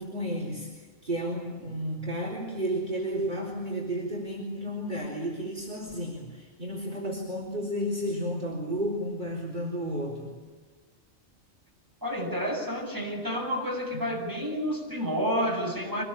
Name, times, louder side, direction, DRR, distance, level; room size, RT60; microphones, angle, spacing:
voice 1, 0.0-10.3 13.9-14.0, equal, 40° right, -1 dB, 4.1 m, -32 dB
voice 2, 12.0-16.0, equal, 15° right, -1 dB, 7.6 m, -30 dB
25.5 x 20.5 x 8.7 m, 1.4 s
omnidirectional pair, 1.3 m